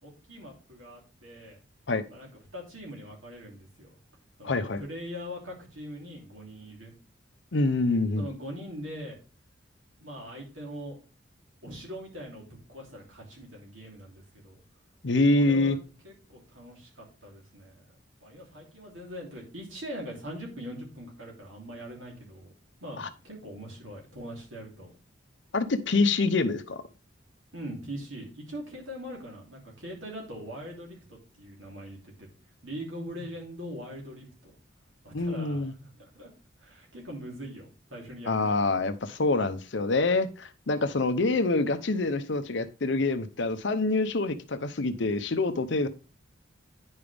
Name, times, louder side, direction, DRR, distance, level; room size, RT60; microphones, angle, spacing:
voice 1, 0.0-1.6 2.1-4.0 4.4-6.9 8.2-9.2 10.0-11.0 11.6-14.6 15.3-15.8 16.0-17.8 18.2-22.5 22.8-24.9 27.5-32.3 32.6-34.5 35.0-36.3 36.6-38.5, equal, 80° right, 3.1 m, -42 dB
voice 2, 4.4-4.8 7.5-8.2 15.0-15.8 23.0-23.1 25.5-26.8 35.1-35.7 38.3-45.9, left 3 dB, 65° left, 0.7 m, -26 dB
9.6 x 5.5 x 3.4 m
head